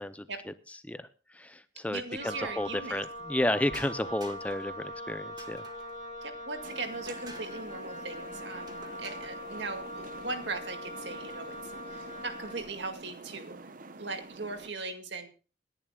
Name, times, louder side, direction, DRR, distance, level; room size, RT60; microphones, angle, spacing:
voice 1, 0.0-5.6, left 1 dB, 10° left, 13 dB, 0.5 m, -33 dB
voice 2, 1.9-3.0 6.2-13.7 14.0-15.3, right 3 dB, 70° right, 6 dB, 2.1 m, -39 dB
Wind instrument woodwind instrument, 2.1-12.7, equal, 35° left, 2.3 m, -42 dB
sound 1, 3.7-4.7 5.4-6.0 7.1-7.6 8.7-9.4, right 2 dB, 20° right, 1.6 m, -50 dB
sound 2, 6.6-14.7, right 3 dB, 45° right, 0.8 m, -47 dB
26.5 x 11.0 x 2.3 m, 0.34 s
head